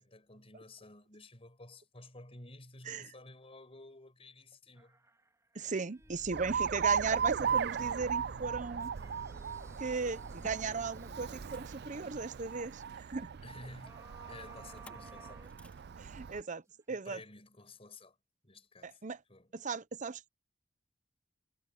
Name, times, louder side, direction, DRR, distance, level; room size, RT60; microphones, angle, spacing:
voice 1, 0.0-5.0 13.4-14.0 14.3-15.4 16.9-18.2 18.4-19.0 19.3-19.5, left 2 dB, 35° left, 5.5 m, -53 dB
sound 1, 4.7-7.9 8.4-12.1 13.8-16.1 16.7-16.8, right 2 dB, 15° right, 4.1 m, -60 dB
voice 2, 5.5-8.9 9.8-13.3 16.0-17.2 18.8-19.2 19.5-20.3, right 4 dB, 45° right, 0.8 m, -37 dB
Motor vehicle (road), 6.0-12.4 14.7-15.1 15.4-15.8, equal, 10° left, 4.1 m, -53 dB
Alarm, 6.3-16.4, right 7 dB, 60° right, 0.4 m, -37 dB
head